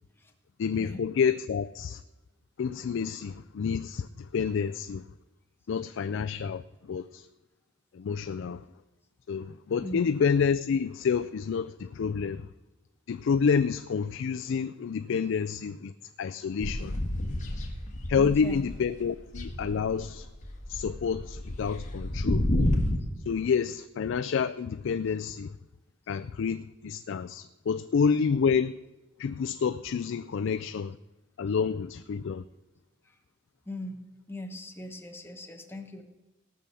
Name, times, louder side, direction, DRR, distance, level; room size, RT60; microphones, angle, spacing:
voice 1, 0.6-2.0 2.6-4.1 4.3-5.0 5.7-6.6 6.9-7.2 8.0-8.6 9.3-12.4 13.1-15.9 16.2-17.0 18.1-20.3 20.7-22.5 23.3-25.5 26.1-28.7 29.2-30.9 31.4-32.4, left 6 dB, 65° left, 0.4 m, -28 dB
voice 2, 9.8-10.1 18.1-18.6 33.0-33.1 33.7-34.0 34.3-36.0, left 1 dB, 10° left, 1.2 m, -40 dB
sound 1, 16.6-18.9 19.2-23.0, left 1 dB, 40° left, 1.7 m, -30 dB
17.5 x 6.3 x 6.9 m
head